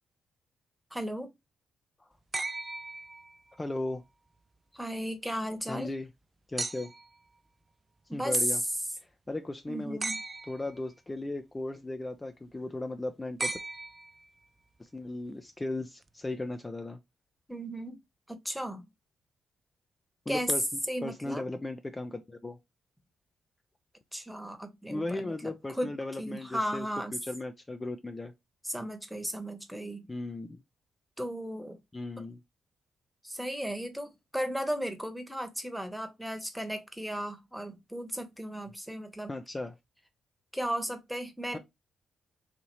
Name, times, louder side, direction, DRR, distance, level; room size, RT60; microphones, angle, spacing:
voice 1, 0.9-1.3 4.7-5.9 8.1-8.6 9.7-10.2 17.5-18.0 18.3-18.8 20.3-20.5 20.9-21.4 24.1-25.9 26.2-27.1 28.6-30.1 31.2-31.8 33.2-39.3 40.5-41.6, equal, ahead, 1.2 m, -35 dB
sound 1, 2.3-3.7 6.6-7.2 10.0-10.8 13.4-14.4 16.0-16.1, right 2 dB, 30° right, 0.4 m, -37 dB
voice 2, 3.6-4.0 5.7-6.1 6.5-6.9 8.1-8.6 9.0-10.0 10.5-13.6 14.8-17.0 20.3-20.6 21.0-22.6 24.9-26.9 27.2-28.3 30.1-30.6 31.9-32.4 39.3-39.7, left 2 dB, 25° left, 0.6 m, -36 dB
4.2 x 2.7 x 3.0 m
hypercardioid pair, 45°, 0 cm